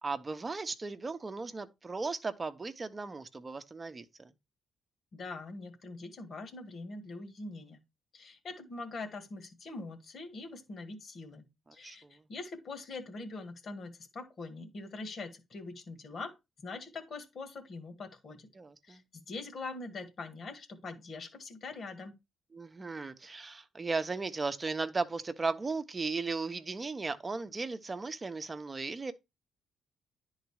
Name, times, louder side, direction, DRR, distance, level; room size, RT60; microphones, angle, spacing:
voice 1, 0.0-4.3 11.8-12.2 18.6-19.0 22.5-29.1, right 4 dB, 25° right, 0.9 m, -36 dB
voice 2, 5.1-7.8 8.1-18.5 18.8-22.2, left 3 dB, 50° left, 1.9 m, -43 dB
10.5 x 4.0 x 4.8 m
cardioid pair, 90°, 0 cm